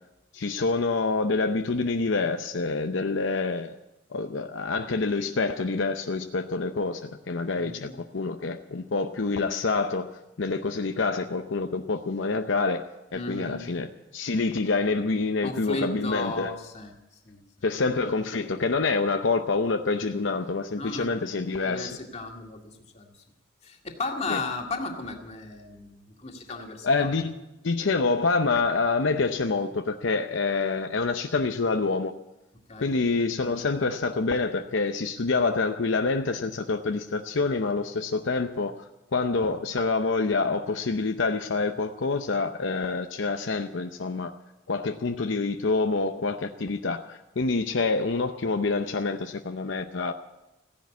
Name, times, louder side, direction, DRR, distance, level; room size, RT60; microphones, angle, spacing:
voice 1, 0.3-3.7 4.1-10.1 10.4-12.8 13.1-16.5 17.6-22.0 24.3-24.4 26.8-27.3 27.6-32.1 32.8-38.7 39.1-44.3 44.7-50.1, left 3 dB, 70° left, 6 dB, 0.7 m, -27 dB
voice 2, 7.5-8.0 13.1-13.7 15.4-16.9 17.2-17.4 20.8-21.1 21.6-23.2 23.6-27.1 32.7-32.9, left 2 dB, 35° left, 2 dB, 2.1 m, -35 dB
15.5 x 10.5 x 8.2 m, 0.95 s
head